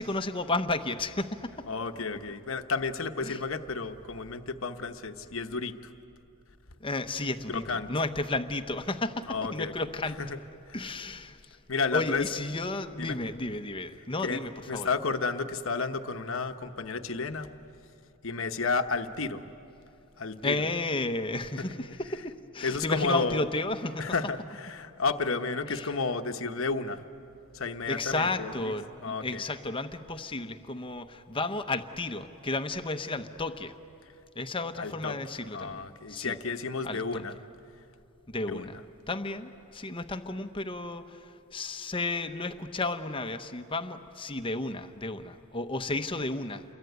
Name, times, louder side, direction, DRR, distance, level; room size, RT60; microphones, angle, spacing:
voice 1, 0.0-1.6 3.2-3.4 6.8-10.2 10.7-11.6 11.9-14.9 20.4-24.1 25.7-25.9 27.9-33.7 34.4-35.8 36.1-36.4 36.8-37.2 38.3-38.8 39.1-46.6, left 2 dB, 25° left, 9 dB, 0.9 m, -33 dB
voice 2, 1.7-5.9 7.5-7.9 9.3-9.7 10.2-10.4 10.7-10.8 11.7-12.2 13.0-13.2 14.2-14.4 14.7-17.5 18.2-19.5 20.2-20.6 21.6-21.7 22.6-23.5 24.0-27.0 27.5-28.7 29.0-29.4 34.8-35.2 35.5-37.3 38.5-38.7, left 4 dB, 60° left, 7 dB, 1.1 m, -32 dB
28.5 x 22.5 x 9.4 m, 2.8 s
head